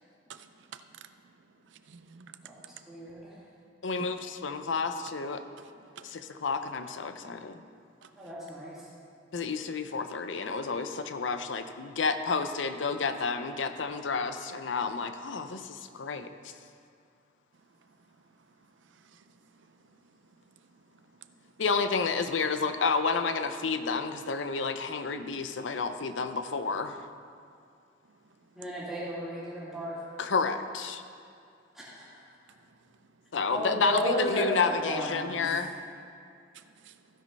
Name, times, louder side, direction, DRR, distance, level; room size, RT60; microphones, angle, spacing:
voice 1, 0.3-1.1 1.7-2.5 4.0-4.1 6.0-6.1 8.0-8.1 36.5-36.9, right 6 dB, 80° right, 10 dB, 0.5 m, -48 dB
voice 2, 2.9-3.4 8.1-8.9 28.5-30.0 31.7-32.1 33.5-35.4, equal, 5° right, -9 dB, 2.6 m, -33 dB
voice 3, 3.8-5.4 6.0-7.6 9.3-16.3 21.6-27.0 30.2-31.0 33.3-35.7, left 4 dB, 85° left, 9 dB, 0.6 m, -30 dB
15.5 x 5.2 x 5.4 m, 2.3 s
head